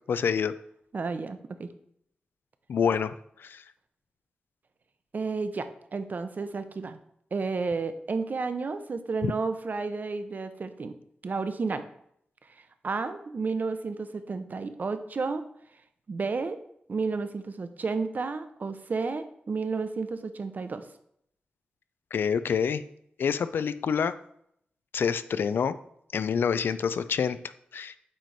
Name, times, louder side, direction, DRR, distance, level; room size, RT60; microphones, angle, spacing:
voice 1, 0.1-0.5 2.7-3.1 3.4-3.6 9.2-9.3 22.1-22.8 23.2-24.1 24.9-25.8 26.1-27.4 27.7-27.9, left 7 dB, 80° left, 13 dB, 0.3 m, -27 dB
voice 2, 0.9-1.7 5.1-7.0 7.3-10.9 11.2-11.8 12.8-15.4 16.1-16.6 16.9-20.8, right 4 dB, 55° right, 10 dB, 0.6 m, -31 dB
8.5 x 3.2 x 4.0 m, 0.72 s
cardioid pair, 70°, 4 cm